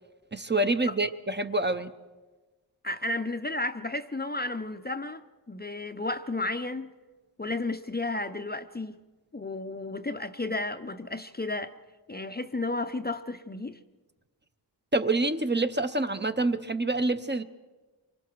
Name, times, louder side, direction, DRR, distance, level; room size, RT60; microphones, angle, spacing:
voice 1, 0.3-1.9 14.9-17.4, right 2 dB, 25° right, 0.7 m, -27 dB
voice 2, 2.8-5.2 5.5-6.9 7.4-9.0 9.3-11.7 12.1-13.8, left 2 dB, 20° left, 0.6 m, -32 dB
25.5 x 24.0 x 4.6 m
wide cardioid pair, 95°, 43 cm